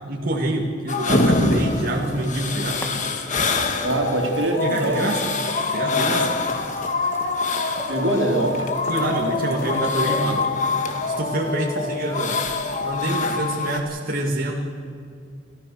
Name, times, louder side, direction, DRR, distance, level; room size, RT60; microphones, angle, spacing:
voice 1, 0.1-2.8 4.6-5.2 5.7-6.4 8.9-10.4 11.0-12.4 12.8-14.5, right 1 dB, 50° right, -1 dB, 2.1 m, -26 dB
sound 1, 0.9-13.8, left 3 dB, 40° left, 1.8 m, -25 dB
sound 2, 2.8-3.5 4.0-10.6 12.5-12.6, left 1 dB, 15° left, 2.1 m, -39 dB
voice 2, 3.8-5.0 7.9-8.7 13.2-13.3, right 1 dB, 80° right, 3 dB, 3.2 m, -23 dB
28.5 x 14.5 x 6.9 m, 2.3 s
head